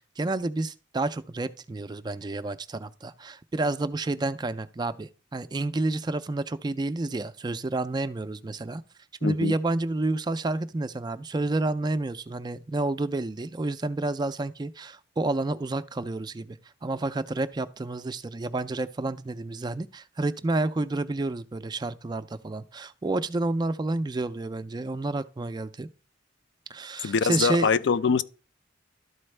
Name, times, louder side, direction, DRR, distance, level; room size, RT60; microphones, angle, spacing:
voice 1, 0.0-8.8 9.2-25.9 26.7-27.7, right 2 dB, 25° right, 0.4 m, -30 dB
voice 2, 9.2-9.5 27.0-28.2, left 5 dB, 70° left, 0.4 m, -23 dB
12.5 x 4.3 x 3.2 m
head